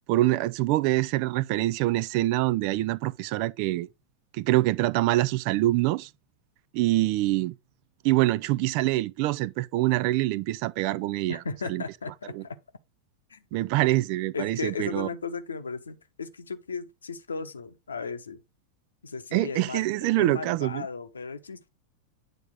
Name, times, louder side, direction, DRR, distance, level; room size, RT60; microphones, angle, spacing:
voice 1, 0.1-3.9 4.3-6.1 6.7-7.5 8.0-11.4 11.7-11.8 12.3-12.4 13.5-15.1 19.3-20.9, right 17 dB, 45° right, 0.4 m, -25 dB
voice 2, 11.3-12.6 13.3-13.4 14.3-18.4 19.0-19.9 20.2-21.7, left 4 dB, 75° left, 0.9 m, -36 dB
9.1 x 3.6 x 5.0 m
figure-of-eight pair, 90°, 0 cm